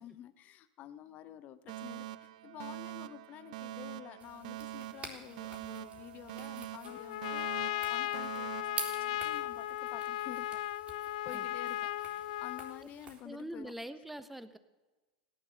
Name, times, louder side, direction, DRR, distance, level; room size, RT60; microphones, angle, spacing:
voice 1, 0.0-10.6 11.2-13.7, left 11 dB, 40° left, 13 dB, 1.2 m, -50 dB
Alarm, 1.7-9.7, right 14 dB, 65° right, 0.6 m, -45 dB
sound 1, 4.2-13.2, right 4 dB, 30° right, 3.7 m, -48 dB
Trumpet, 6.8-12.8, left 14 dB, 70° left, 0.6 m, -36 dB
voice 2, 13.2-14.6, right 1 dB, 5° right, 12 dB, 1.2 m, -43 dB
16.5 x 11.0 x 7.8 m, 1.2 s
hypercardioid pair, 105°, 4 cm